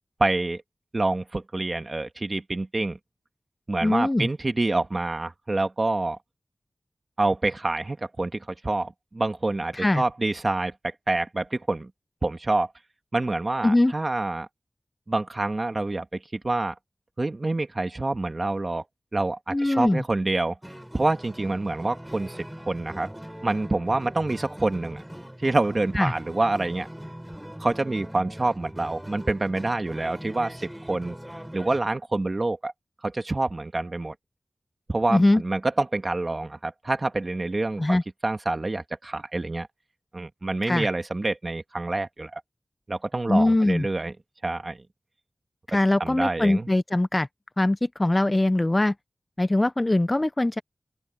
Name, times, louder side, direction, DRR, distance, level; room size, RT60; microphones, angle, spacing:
voice 1, 0.2-0.6 0.9-3.0 3.7-6.2 7.2-11.9 12.2-12.7 13.1-14.5 15.1-16.7 17.2-18.8 19.1-20.6 20.9-23.1 23.4-25.0 25.4-26.9 27.6-31.2 31.5-32.7 33.0-34.1 34.9-39.7 40.1-42.4 42.9-44.1 44.4-44.8 46.0-46.7, right 2 dB, 40° right, 1.9 m, -27 dB
voice 2, 3.8-4.3 9.7-10.0 13.6-13.9 19.5-20.0 26.0-26.1 35.1-35.4 37.8-38.0 40.6-40.9 43.3-43.9 45.7-47.3 47.6-48.9 49.4-50.6, left 1 dB, 25° left, 0.5 m, -22 dB
sound 1, 20.6-31.8, equal, 5° right, 7.9 m, -41 dB
open air
wide cardioid pair, 65°, 0 cm